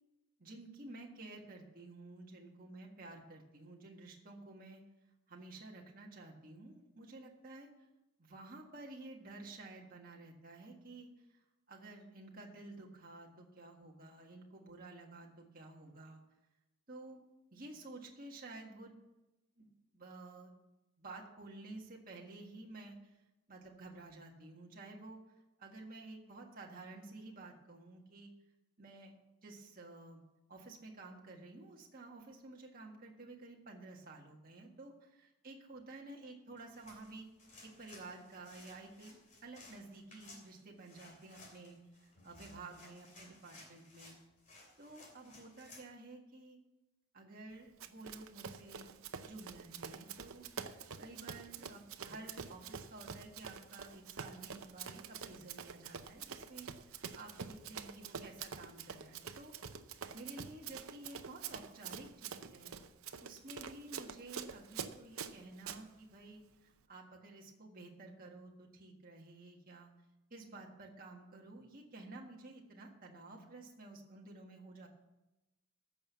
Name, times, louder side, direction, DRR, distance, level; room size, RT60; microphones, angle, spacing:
voice 1, 0.4-4.8 5.3-7.7 8.2-11.4 11.7-16.2 16.9-17.2 17.5-18.9 19.6-20.5 21.0-23.2 23.5-25.2 25.6-28.3 28.8-29.1 29.4-30.2 30.5-37.3 37.6-39.1 39.4-44.2 44.8-46.6 47.1-48.9 49.2-59.5 60.1-62.7 63.2-69.9 70.3-74.9, right 2 dB, 40° right, -1 dB, 1.7 m, -52 dB
sound 1, 36.6-45.9, left 2 dB, 35° left, 2.8 m, -59 dB
Run, 47.8-65.8, right 6 dB, 75° right, 0.7 m, -47 dB
14.5 x 6.2 x 6.9 m, 1.0 s
head